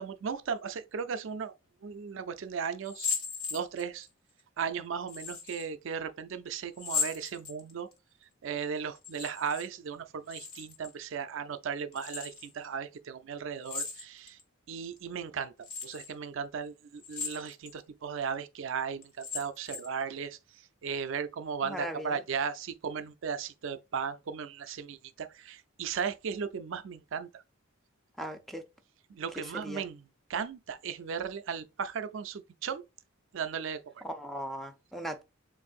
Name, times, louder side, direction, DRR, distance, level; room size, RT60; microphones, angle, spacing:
voice 1, 0.0-1.5 1.8-3.1 3.5-4.1 4.6-7.9 8.4-14.4 14.7-15.5 15.8-20.4 20.8-27.4 29.1-30.0 30.3-32.8 33.3-34.0, right 6 dB, 65° right, 0.4 m, -36 dB
sound 1, 2.8-4.1 5.1-5.7 6.7-7.9 8.9-9.7 9.9-10.9 11.9-12.5 13.6-14.4 15.0-15.1 15.6-16.1 17.0-17.7 18.2-18.3 19.0-20.0, left 5 dB, 85° left, 1.3 m, -37 dB
voice 2, 21.6-22.2 28.2-28.6 29.4-29.8 34.0-35.2, equal, ahead, 0.5 m, -38 dB
7.0 x 2.6 x 2.4 m
head